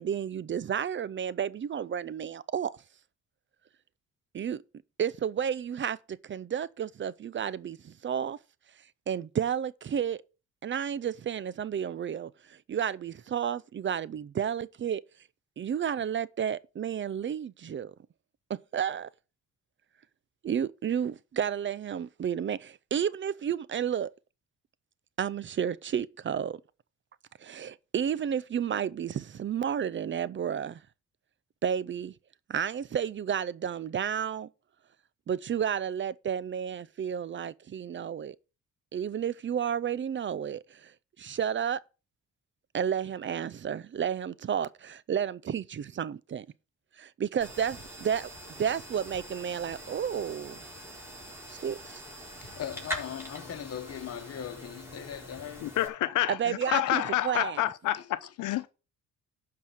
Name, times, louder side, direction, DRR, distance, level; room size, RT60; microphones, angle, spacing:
voice 1, 0.0-2.8 4.3-4.6 5.0-8.4 9.1-10.2 10.6-15.0 15.6-17.9 18.5-19.1 20.4-24.1 25.2-26.6 27.4-30.8 31.6-32.1 32.5-34.5 35.3-38.4 38.9-40.9 41.2-41.8 42.7-46.5 47.0-48.3 48.6-50.6 51.5-52.0 56.3-57.6, right 8 dB, 40° right, 0.5 m, -31 dB
sound 1, 47.4-55.9, equal, 10° right, 4.2 m, -43 dB
voice 2, 52.4-55.7 56.3-56.4 56.7-57.4 57.9-58.6, left 9 dB, 55° left, 1.2 m, -40 dB
voice 3, 55.6-58.7, left 14 dB, 85° left, 0.9 m, -29 dB
11.5 x 4.8 x 7.1 m
cardioid pair, 90°, 30 cm